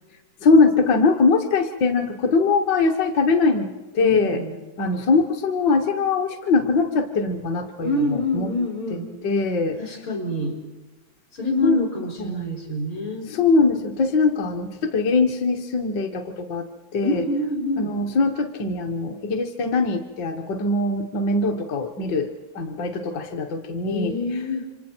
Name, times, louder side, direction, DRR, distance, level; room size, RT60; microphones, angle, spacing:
voice 1, 0.4-4.4 4.8-8.5 9.2-9.8 11.6-11.7 12.2-12.4 13.3-16.6 16.9-17.2 17.8-24.1, left 3 dB, 60° left, 4 dB, 1.6 m, -22 dB
voice 2, 4.0-4.6 7.8-9.1 9.8-10.6 11.4-13.3 17.0-17.9 23.9-24.6, left 2 dB, 80° left, 1 dB, 5.0 m, -26 dB
28.5 x 25.0 x 4.4 m, 1.1 s
omnidirectional pair, 2.2 m